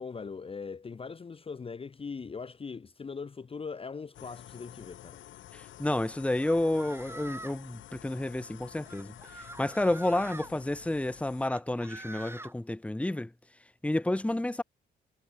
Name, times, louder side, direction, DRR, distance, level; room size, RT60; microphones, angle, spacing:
voice 1, 0.0-5.2, left 5 dB, 30° left, 0.9 m, -40 dB
sound 1, 4.1-11.5, left 12 dB, 75° left, 2.2 m, -50 dB
voice 2, 5.5-9.1 9.6-13.3 13.8-14.6, left 1 dB, 5° left, 1.1 m, -30 dB
sound 2, 6.4-7.7 8.9-10.5 11.4-12.5, right 2 dB, 10° right, 5.1 m, -45 dB
cardioid pair, 90°, 20 cm